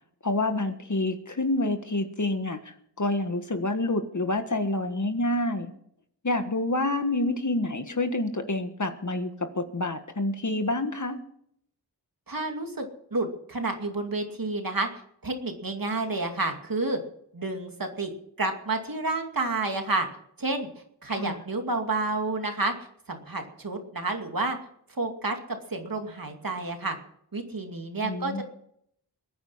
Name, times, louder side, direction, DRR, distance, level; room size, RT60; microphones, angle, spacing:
voice 1, 0.2-5.7 6.2-11.2 21.1-21.4 28.0-28.4, left 2 dB, 45° left, 7 dB, 1.6 m, -28 dB
voice 2, 12.3-14.9 15.2-17.0 17.3-20.1 20.4-20.7 21.0-22.7 23.1-24.6 24.9-27.0 27.3-28.4, right 2 dB, 55° right, 4 dB, 2.4 m, -30 dB
22.0 x 9.5 x 5.7 m, 0.71 s
wide cardioid pair, 65°, 40 cm